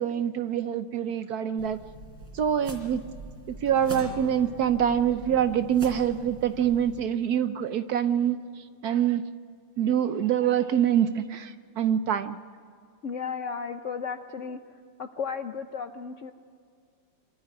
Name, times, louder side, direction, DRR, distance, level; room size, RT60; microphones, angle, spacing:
voice 1, 0.0-1.8 2.3-3.0 3.6-8.4 8.8-9.2 9.8-12.4, right 9 dB, 65° right, 11 dB, 1.1 m, -25 dB
sound 1, 1.6-7.0, right 1 dB, 85° right, 4.3 m, -44 dB
sound 2, 3.7-8.3, equal, 30° right, 2.3 m, -46 dB
voice 2, 13.0-14.6 15.0-16.3, left 6 dB, 60° left, 7 dB, 0.8 m, -34 dB
25.5 x 13.0 x 9.4 m, 2.1 s
omnidirectional pair, 2.0 m